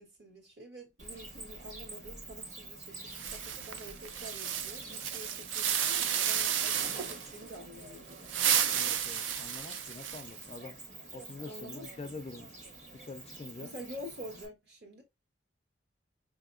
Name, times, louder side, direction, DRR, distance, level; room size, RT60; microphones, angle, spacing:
voice 1, 0.0-8.8 11.5-12.1 13.6-15.0, equal, 60° right, 1.6 m, -48 dB
Cricket, 1.0-14.5, right 3 dB, 40° right, 1.1 m, -47 dB
sound 1, 3.1-7.3 8.1-10.4, right 9 dB, 80° right, 0.4 m, -32 dB
voice 2, 8.7-10.8 11.1-12.6 12.9-13.7, left 3 dB, 30° left, 0.3 m, -45 dB
5.4 x 2.7 x 2.5 m
head